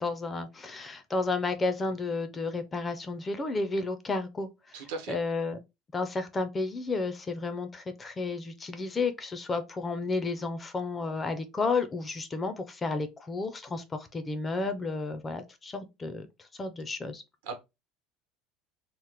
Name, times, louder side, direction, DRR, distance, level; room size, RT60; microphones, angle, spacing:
voice 1, 0.0-4.5 5.1-5.6 5.9-13.8 14.1-16.3 16.6-17.2, left 3 dB, 15° left, 0.4 m, -32 dB
voice 2, 4.7-5.2 17.4-17.5, right 4 dB, 85° right, 0.9 m, -37 dB
2.9 x 2.0 x 3.3 m
cardioid pair, 160°, 0 cm